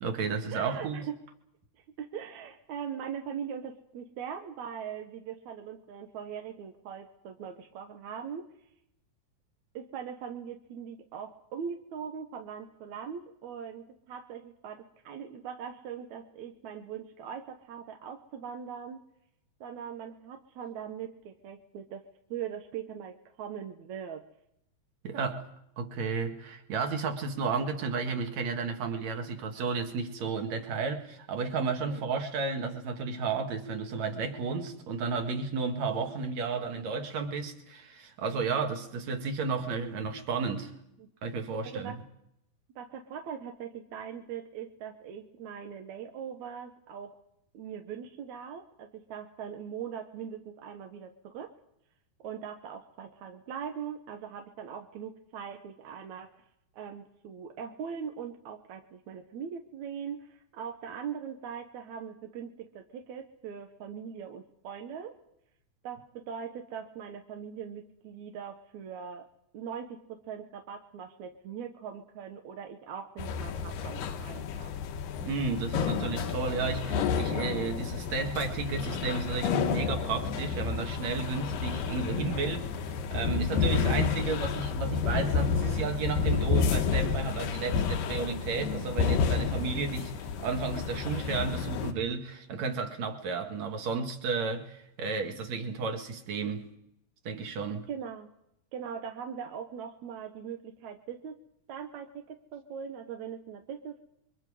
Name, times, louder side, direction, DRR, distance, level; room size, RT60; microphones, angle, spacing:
voice 1, 0.0-1.0 25.0-25.4 25.8-40.7 41.2-41.9 75.2-82.7 83.1-96.7 97.2-97.9, right 4 dB, 50° right, 5 dB, 2.7 m, -32 dB
voice 2, 0.5-1.2 2.0-8.5 9.7-19.0 19.6-24.3 31.9-32.1 36.0-36.1 41.0-41.1 41.6-42.0 42.8-47.2 47.5-51.5 52.2-56.3 56.7-65.2 65.8-69.3 69.5-74.7 97.9-98.3 98.7-101.4 101.7-104.0, right 7 dB, 70° right, 4 dB, 1.8 m, -41 dB
sound 1, 73.2-91.9, left 6 dB, 70° left, 2.4 m, -30 dB
28.0 x 23.0 x 4.9 m, 0.78 s
omnidirectional pair, 4.7 m